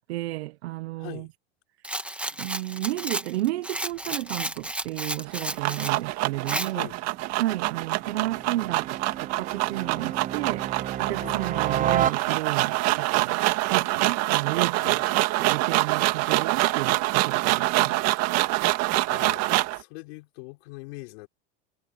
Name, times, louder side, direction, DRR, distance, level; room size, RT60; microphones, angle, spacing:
voice 1, 0.1-1.3 2.4-6.9 7.4-15.0 15.4-18.0, right 17 dB, 90° right, 0.8 m, -32 dB
voice 2, 1.0-1.3 6.7-7.0 11.2-11.4 14.8-15.0 17.8-18.4 18.9-19.4 19.7-21.3, left 25 dB, 70° left, 4.6 m, -42 dB
Rattle, 1.8-6.0 6.5-6.7, right 1 dB, 5° right, 1.9 m, -32 dB
sound 1, 5.2-19.8, right 19 dB, 55° right, 1.9 m, -25 dB
sound 2, 6.6-12.8, right 10 dB, 25° right, 0.6 m, -32 dB
supercardioid pair, 120°, 31 cm